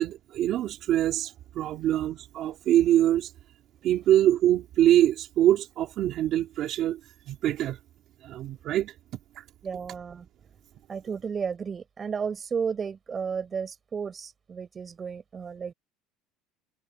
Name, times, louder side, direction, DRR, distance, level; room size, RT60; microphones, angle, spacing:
voice 1, 0.0-3.3 3.8-7.0 7.3-7.8 8.2-8.9 9.4-9.5, right 12 dB, 50° right, 3.0 m, -24 dB
voice 2, 9.6-10.3 10.9-15.7, right 6 dB, 25° right, 5.4 m, -33 dB
cardioid pair, 130°, 0 cm